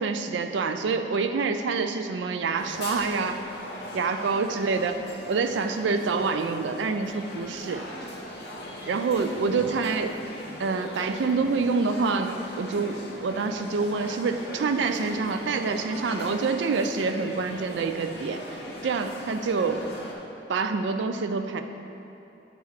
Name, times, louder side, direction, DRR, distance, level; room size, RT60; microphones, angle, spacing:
voice 1, 0.0-3.4 3.9-4.9 5.3-7.9 8.9-10.1 10.6-18.4 18.8-19.8 20.5-21.6, right 4 dB, 75° right, 8 dB, 0.4 m, -27 dB
sound 1, 2.6-20.1, left 1 dB, 60° left, 0.9 m, -39 dB
8.2 x 3.4 x 4.8 m, 2.9 s
head